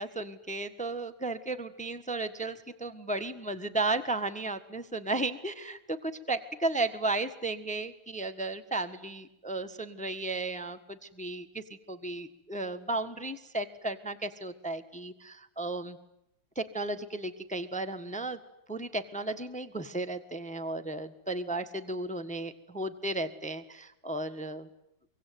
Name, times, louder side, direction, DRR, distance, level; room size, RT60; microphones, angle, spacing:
voice 1, 0.0-16.0 16.5-18.4 18.7-24.7, right 2 dB, 5° left, 10 dB, 1.2 m, -34 dB
25.0 x 24.0 x 9.3 m, 0.81 s
omnidirectional pair, 2.2 m